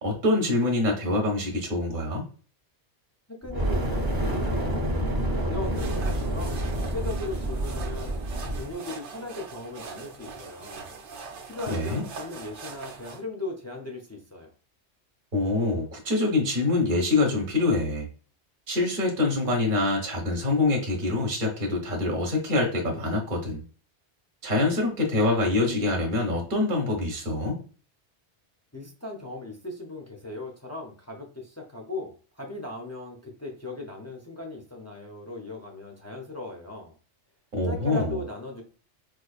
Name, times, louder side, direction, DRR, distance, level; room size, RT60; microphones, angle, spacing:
voice 1, 0.0-2.2 11.7-12.0 15.3-18.1 18.7-23.6 24.4-27.6 37.5-38.1, left 2 dB, 50° right, 1 dB, 1.1 m, -25 dB
voice 2, 3.3-4.9 5.4-8.2 8.5-10.9 11.5-14.5 28.7-36.9 37.6-38.6, left 2 dB, 25° left, 1 dB, 0.3 m, -38 dB
Fire, 3.4-8.7, right 1 dB, 25° right, 0.6 m, -28 dB
sound 1, 5.6-13.2, right 4 dB, 85° right, 1.0 m, -42 dB
4.4 x 2.4 x 2.4 m, 0.39 s
omnidirectional pair, 1.2 m